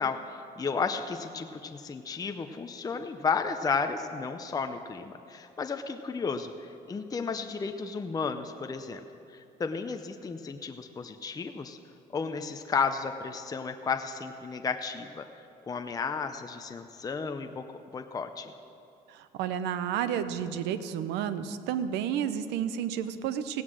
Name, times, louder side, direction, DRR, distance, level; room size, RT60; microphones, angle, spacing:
voice 1, 0.0-9.0 9.3-11.8 12.1-15.2 15.7-17.6 17.9-18.5, left 5 dB, 20° left, 7 dB, 0.6 m, -33 dB
voice 2, 19.1-23.6, right 9 dB, 90° right, 12 dB, 0.7 m, -31 dB
16.5 x 9.4 x 6.2 m, 2.6 s
cardioid pair, 110°, 17 cm